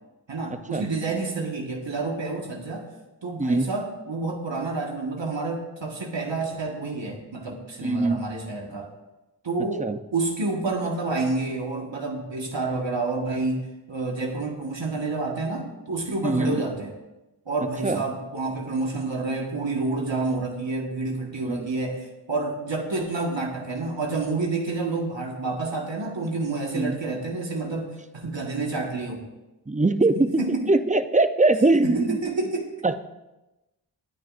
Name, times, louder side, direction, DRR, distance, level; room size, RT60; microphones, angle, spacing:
voice 1, 0.3-2.9 3.2-8.9 9.4-16.9 17.4-29.2 30.4-30.6 31.8-32.7, right 3 dB, 85° right, 0 dB, 1.6 m, -29 dB
voice 2, 7.8-8.2 9.8-10.0 16.2-16.6 17.8-18.0 21.5-21.7 26.8-27.0 29.7-30.4 30.7-32.2 32.8-32.9, right 2 dB, 15° right, 10 dB, 0.6 m, -21 dB
19.0 x 9.2 x 2.6 m, 1.0 s
wide cardioid pair, 50°, 43 cm